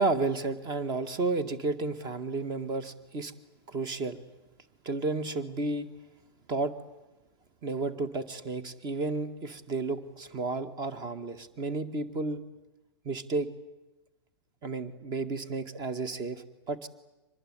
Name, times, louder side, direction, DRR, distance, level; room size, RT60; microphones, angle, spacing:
voice 1, 0.0-3.3 3.7-4.2 4.8-5.9 6.5-6.7 7.6-12.4 13.1-13.5 14.6-16.9, right 3 dB, 30° right, 13 dB, 1.9 m, -32 dB
24.5 x 20.5 x 9.7 m, 1.0 s
figure-of-eight pair, 105°, 13 cm